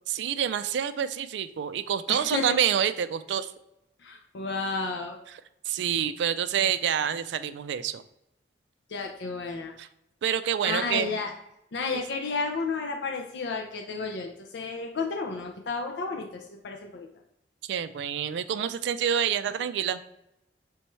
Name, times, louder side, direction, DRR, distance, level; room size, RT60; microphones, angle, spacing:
voice 1, 0.1-3.5 5.7-8.0 9.8-9.9 10.2-11.2 17.7-20.0, right 8 dB, 80° right, 13 dB, 0.3 m, -27 dB
voice 2, 2.1-2.6 4.0-5.2 8.9-9.7 10.6-11.3 11.7-17.1, left 4 dB, 75° left, 2 dB, 0.4 m, -32 dB
3.5 x 3.1 x 4.3 m, 0.83 s
head